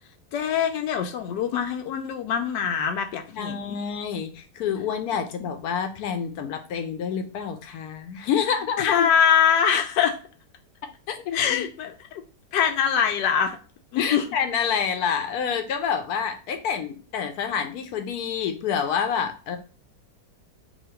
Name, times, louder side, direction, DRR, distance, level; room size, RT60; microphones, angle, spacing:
voice 1, 0.3-3.8 5.4-5.5 8.8-10.2 11.3-11.9 12.5-13.6 13.9-14.3, left 8 dB, 85° left, 6 dB, 1.2 m, -23 dB
voice 2, 3.3-9.1 11.1-11.4 14.0-19.6, left 7 dB, 70° left, 7 dB, 1.1 m, -28 dB
2.9 x 2.7 x 4.3 m, 0.36 s
omnidirectional pair, 1.8 m